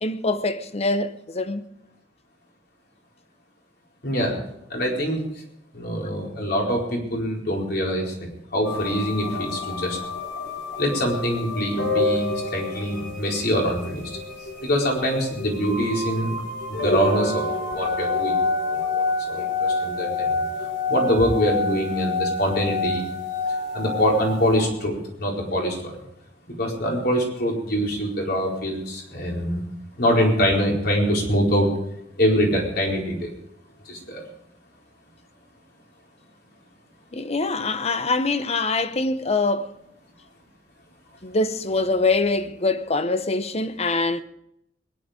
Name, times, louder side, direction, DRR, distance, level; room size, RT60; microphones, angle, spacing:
voice 1, 0.0-1.6 37.1-39.7 41.2-44.2, left 3 dB, 35° left, 0.8 m, -24 dB
voice 2, 4.0-4.4 4.7-5.2 5.7-8.1 8.5-10.0 10.8-14.1 14.6-16.3 16.7-17.5 17.7-18.4 18.9-23.0 23.7-26.0 26.6-29.6 30.0-31.7 32.2-33.3 33.9-34.2, equal, 60° left, 4.5 m, -24 dB
sound 1, 8.6-24.7, left 3 dB, 90° left, 3.6 m, -28 dB
21.5 x 10.5 x 5.1 m
head